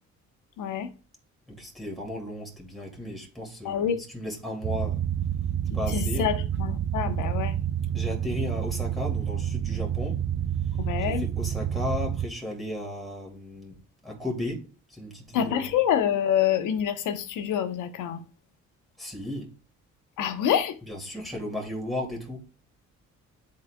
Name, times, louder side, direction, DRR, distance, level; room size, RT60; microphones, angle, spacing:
voice 1, 0.6-0.9 3.6-4.0 5.9-7.6 10.8-11.3 15.3-18.2 20.2-20.8, left 9 dB, 85° left, 0.9 m, -26 dB
voice 2, 1.6-5.0 5.7-6.3 7.9-10.2 11.0-13.8 14.0-15.7 19.0-19.5 20.9-22.4, left 1 dB, ahead, 2.3 m, -35 dB
sound 1, 4.6-12.3, right 9 dB, 40° right, 0.4 m, -28 dB
10.5 x 4.1 x 2.2 m
cardioid pair, 90°, 30 cm